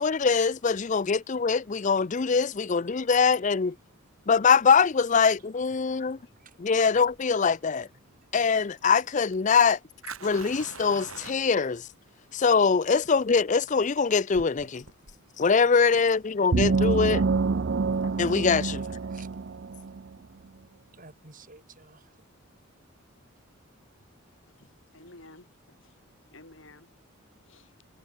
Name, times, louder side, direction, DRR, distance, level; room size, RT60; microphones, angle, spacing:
voice 1, 0.0-3.8 4.3-6.2 6.6-7.9 8.3-9.8 10.2-11.9 12.3-14.8 15.4-17.2 18.2-18.8, left 5 dB, 35° left, 0.5 m, -23 dB
voice 2, 0.9-1.6 2.1-2.4 3.8-4.3 5.8-6.7 7.8-8.4 15.2-15.4 17.7-20.3 20.5-22.5, right 3 dB, 40° right, 4.8 m, -57 dB
Fire, 7.0-18.0, right 5 dB, 85° right, 6.3 m, -47 dB
sound 1, 16.5-20.1, right 4 dB, 55° right, 0.5 m, -26 dB
voice 3, 24.3-26.0 26.3-26.9 27.4-27.7, left 2 dB, 65° left, 6.7 m, -53 dB
head